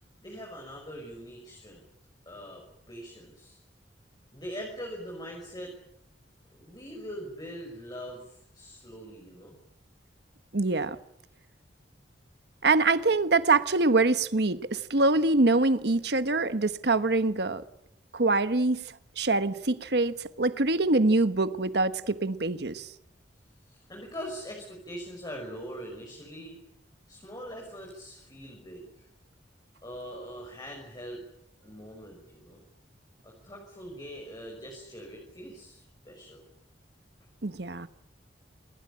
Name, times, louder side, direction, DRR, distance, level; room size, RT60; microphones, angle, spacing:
voice 1, 0.2-1.8 2.3-2.6 2.9-3.6 4.3-5.7 6.5-9.5 23.6-26.6 27.1-29.0 29.8-31.2 31.6-32.6 33.2-36.4, equal, 25° left, 6.1 m, -42 dB
voice 2, 10.5-11.0 12.6-17.6 18.1-18.8 19.2-22.9 37.4-37.9, right 3 dB, 65° right, 1.2 m, -24 dB
27.5 x 20.5 x 8.8 m
head